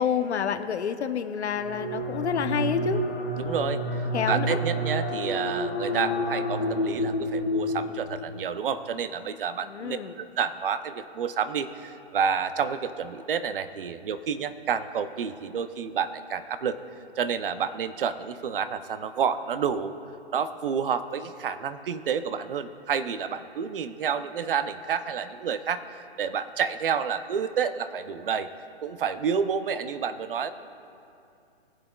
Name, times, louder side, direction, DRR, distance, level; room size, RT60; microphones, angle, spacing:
voice 1, 0.0-3.0 4.1-4.6 9.7-10.1, left 7 dB, 75° left, 9 dB, 0.9 m, -28 dB
sound 1, 1.5-8.4, equal, 10° left, 0.3 m, -29 dB
voice 2, 3.4-16.8 17.2-20.0 20.3-25.8 26.2-28.5 28.8-30.5, right 7 dB, 55° right, 12 dB, 0.6 m, -29 dB
21.0 x 7.7 x 2.3 m, 2.6 s
hypercardioid pair, 155°, 33 cm